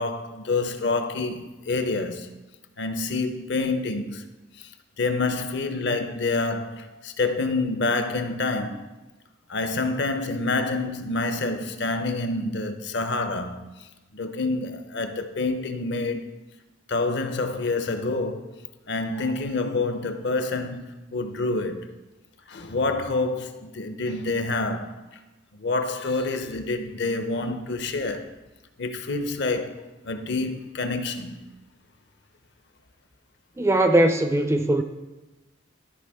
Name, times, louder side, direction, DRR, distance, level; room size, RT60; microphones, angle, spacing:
voice 1, 0.0-2.3 2.8-4.2 4.6-4.7 5.0-8.9 9.5-16.3 16.9-18.5 18.9-21.9 22.5-25.2 25.6-28.4 28.8-31.4, left 3 dB, 60° left, 0.6 m, -27 dB
voice 2, 33.6-34.8, right 1 dB, 15° right, 0.4 m, -20 dB
12.5 x 4.7 x 3.5 m
head